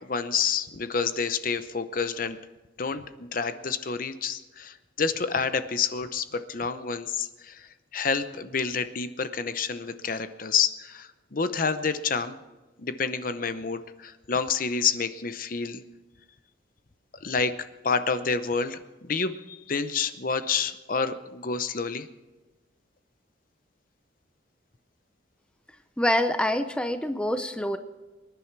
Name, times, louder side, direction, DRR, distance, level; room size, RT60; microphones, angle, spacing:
voice 1, 0.0-2.4 2.8-12.4 12.8-15.8 17.2-17.5 17.8-22.1, left 5 dB, 45° left, 11 dB, 0.7 m, -29 dB
voice 2, 26.0-27.8, left 1 dB, 5° left, 8 dB, 0.6 m, -26 dB
25.0 x 10.5 x 4.6 m, 1.2 s
head